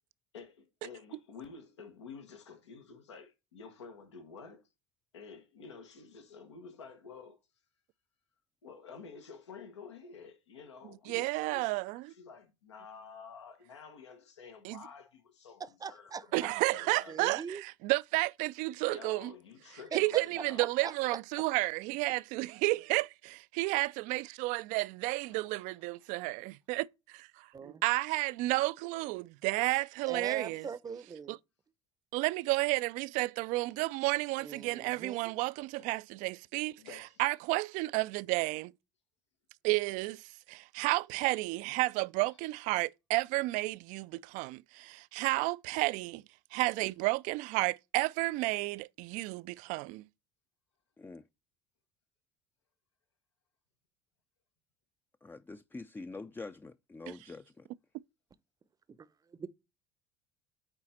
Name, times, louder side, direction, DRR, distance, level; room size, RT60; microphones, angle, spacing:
voice 1, 0.3-4.6 5.1-7.4 8.6-17.2 18.8-20.7 25.2-26.1 35.8-35.9 36.8-37.2, left 5 dB, 90° left, 1.3 m, -50 dB
voice 2, 11.1-12.0 14.6-14.8 16.3-19.3 19.9-30.7 31.3-31.4 32.1-36.8 37.2-38.7 39.6-40.2 40.5-46.2 46.5-50.0, right 22 dB, 65° right, 0.4 m, -32 dB
voice 3, 15.6-16.2 17.1-17.6 19.9-20.0 20.6-20.9 27.5-27.8 30.1-31.4 34.4-35.3 58.9-59.1 59.4-59.5, right 6 dB, 25° right, 0.7 m, -41 dB
voice 4, 55.2-57.7, left 3 dB, 15° left, 0.4 m, -45 dB
8.8 x 4.0 x 4.2 m
hypercardioid pair, 70°, 14 cm